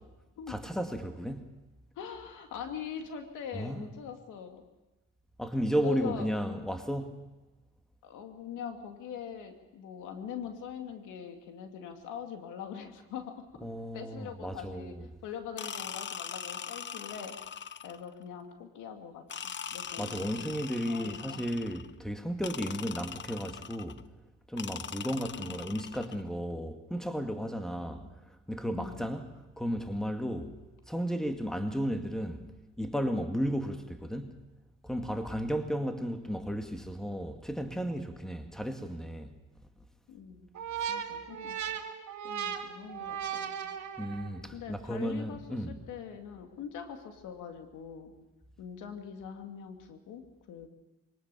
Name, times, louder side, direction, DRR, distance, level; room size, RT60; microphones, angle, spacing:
voice 1, 0.5-1.5 3.5-3.9 5.4-7.2 13.6-15.0 20.0-24.0 24.5-29.3 29.6-30.6 30.9-32.4 32.8-34.4 34.8-39.4 40.8-40.9 44.0-45.8, equal, ahead, 2.2 m, -34 dB
voice 2, 2.0-4.6 5.8-6.3 8.0-13.5 13.9-20.5 20.9-21.4 25.3-25.7 27.8-28.1 28.7-29.1 35.0-35.2 40.1-40.5 40.9-41.9 42.2-43.5 44.5-48.1 48.6-50.7, left 7 dB, 85° left, 2.4 m, -43 dB
sound 1, 15.6-18.1 19.3-21.9 22.4-24.0 24.6-26.2, left 8 dB, 40° left, 0.7 m, -41 dB
sound 2, 40.5-44.4, right 8 dB, 65° right, 2.4 m, -37 dB
23.5 x 19.0 x 7.0 m
cardioid pair, 90°, 30 cm